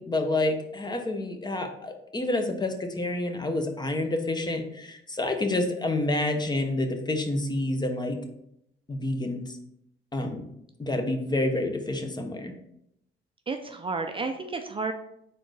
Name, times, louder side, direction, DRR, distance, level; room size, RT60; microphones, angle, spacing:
voice 1, 0.0-8.2 8.9-9.4 10.1-10.4 10.8-12.5, left 2 dB, 20° left, 6 dB, 0.6 m, -28 dB
voice 2, 13.5-14.9, right 3 dB, 25° right, 6 dB, 0.4 m, -31 dB
4.2 x 3.7 x 3.3 m, 0.77 s
cardioid pair, 90°, 20 cm